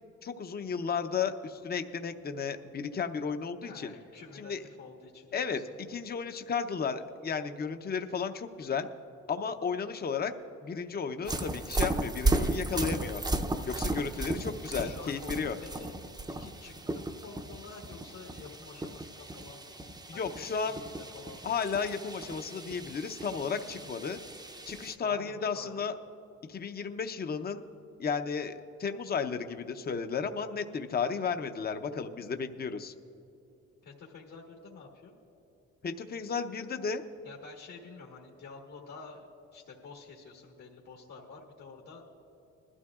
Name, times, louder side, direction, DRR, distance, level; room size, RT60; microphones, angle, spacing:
voice 1, 0.2-3.9 4.3-4.6 5.3-5.6 5.9-8.9 9.3-10.3 10.6-13.2 13.6-15.6 20.1-20.8 21.4-24.2 24.7-25.9 26.5-27.6 28.0-28.5 28.8-32.9 35.8-37.0, left 6 dB, 30° left, 8 dB, 0.7 m, -33 dB
voice 2, 3.7-5.6 14.7-15.9 16.3-19.8 20.1-21.5 25.0-25.9 33.8-35.2 37.2-42.0, left 4 dB, 65° left, -2 dB, 1.5 m, -49 dB
sound 1, 11.3-25.0, right 2 dB, 15° right, 0.6 m, -35 dB
20.5 x 12.5 x 2.4 m, 2.8 s
cardioid pair, 90°, 30 cm